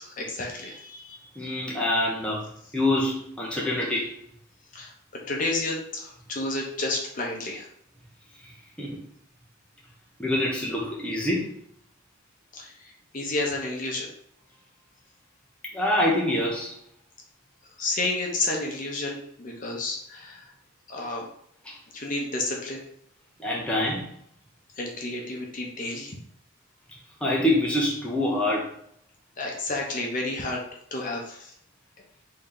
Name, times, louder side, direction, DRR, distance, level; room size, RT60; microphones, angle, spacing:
voice 1, 0.0-1.2 4.7-4.9 5.3-7.7 12.5-14.1 17.8-20.4 20.9-21.2 21.9-22.8 24.8-26.2 29.4-30.6 30.9-31.5, left 2 dB, 40° left, 0 dB, 0.7 m, -31 dB
voice 2, 1.4-2.4 2.7-4.1 8.8-9.0 10.2-11.5 15.7-16.7 21.6-21.7 23.4-24.0 27.2-28.7, left 1 dB, 5° left, -5 dB, 0.6 m, -25 dB
3.2 x 2.7 x 3.8 m, 0.68 s
head